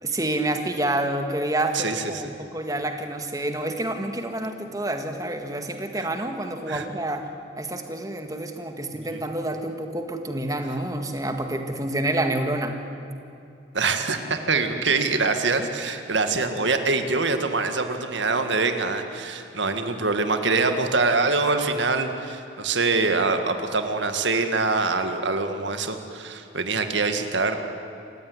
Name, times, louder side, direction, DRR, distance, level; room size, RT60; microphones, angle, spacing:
voice 1, 0.0-7.3 7.6-12.7, right 1 dB, 20° right, 5 dB, 1.8 m, -28 dB
voice 2, 13.7-27.6, right 3 dB, 75° right, 7 dB, 1.9 m, -24 dB
27.5 x 16.0 x 9.8 m, 2.7 s
head